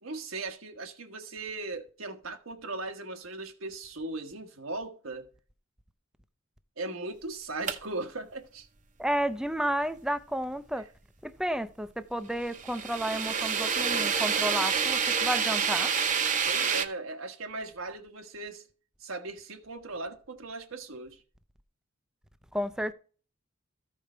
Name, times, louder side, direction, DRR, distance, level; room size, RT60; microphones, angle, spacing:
voice 1, 0.0-5.3 6.8-8.7 16.5-18.6 19.0-21.2, right 2 dB, 90° right, 1.4 m, -38 dB
sound 1, 7.6-7.7 12.5-16.9, right 6 dB, 40° right, 0.8 m, -27 dB
voice 2, 9.0-10.9 11.2-15.9 22.5-22.9, equal, 5° right, 0.5 m, -31 dB
14.0 x 5.1 x 4.4 m
head